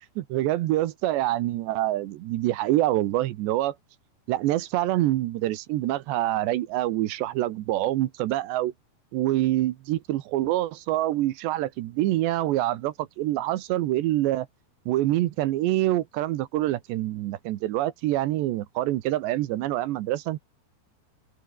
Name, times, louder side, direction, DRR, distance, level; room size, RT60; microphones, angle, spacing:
voice 1, 0.2-3.8 4.3-8.7 9.1-14.5 14.9-20.4, right 15 dB, 75° right, 3.2 m, -26 dB
open air
omnidirectional pair, 5.4 m